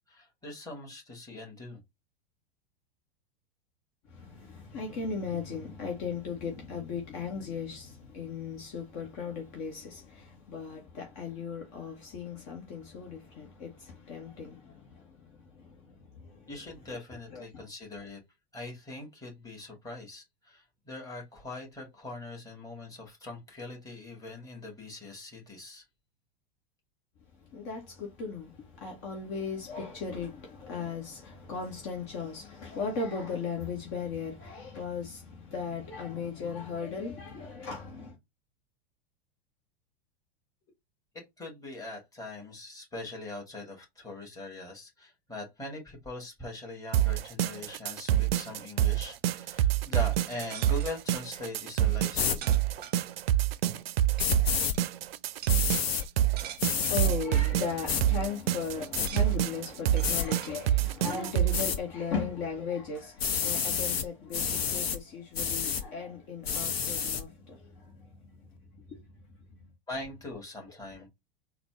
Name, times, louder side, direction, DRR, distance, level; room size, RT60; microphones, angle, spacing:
voice 1, 0.1-1.8 16.5-18.2 18.5-25.8 41.1-52.6 69.9-71.1, left 2 dB, 10° left, 2.1 m, -42 dB
voice 2, 4.1-16.5 17.3-17.6 27.5-38.2 56.6-68.4 68.7-69.1 69.6-69.7, left 5 dB, 45° left, 1.3 m, -37 dB
sound 1, 46.9-61.6, right 12 dB, 70° right, 0.5 m, -27 dB
sound 2, 50.1-51.0 52.0-52.1 52.4-53.4 54.2-54.3 54.6-54.8 55.4-57.0 57.7-57.8 58.1-58.2 58.5-59.4 60.0-60.5 61.1-61.2, right 9 dB, 30° right, 0.7 m, -44 dB
sound 3, 52.1-52.4 54.2-54.7 55.5-56.0 56.6-57.1 57.9-58.0 58.6-59.1 60.0-60.3 61.5-61.8 63.2-64.1 64.3-65.0 65.3-65.8 66.4-67.2, left 7 dB, 75° left, 0.9 m, -29 dB
4.0 x 2.3 x 3.0 m
hypercardioid pair, 95°, 31 cm